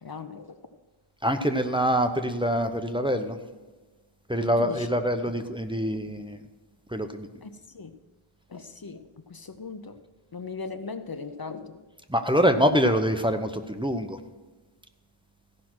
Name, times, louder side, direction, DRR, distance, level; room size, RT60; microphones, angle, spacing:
voice 1, 0.0-0.6 4.4-4.9 7.4-8.0 8.5-10.0 10.3-11.8, left 4 dB, 45° left, 10 dB, 0.7 m, -39 dB
voice 2, 1.2-3.4 4.3-6.4 6.9-7.3 12.1-14.2, equal, 10° right, 6 dB, 0.8 m, -25 dB
15.0 x 5.8 x 6.1 m, 1.3 s
wide cardioid pair, 45°, 50 cm